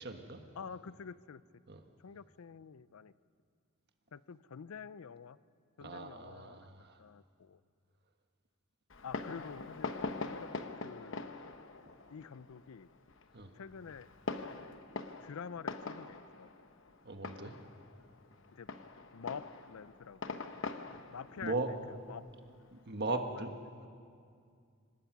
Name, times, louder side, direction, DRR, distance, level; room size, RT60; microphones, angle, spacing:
voice 1, 0.0-0.4 1.7-1.8 5.8-7.0 13.3-13.5 17.0-17.5 21.4-21.7 22.7-23.5, right 2 dB, 50° right, 6 dB, 1.4 m, -38 dB
voice 2, 0.6-1.4 2.0-3.1 4.1-5.4 5.8-6.7 7.0-7.6 9.0-9.9 10.2-10.5 10.8-11.3 12.1-12.9 13.5-14.1 14.6-14.8 15.2-16.5 18.5-18.7 19.1-20.4 21.1-21.8 22.1-22.2 23.1-23.5, left 6 dB, 90° left, 17 dB, 0.5 m, -47 dB
Fireworks, 8.9-23.1, left 3 dB, 65° left, 1.0 m, -44 dB
25.0 x 19.5 x 6.0 m, 2.3 s
head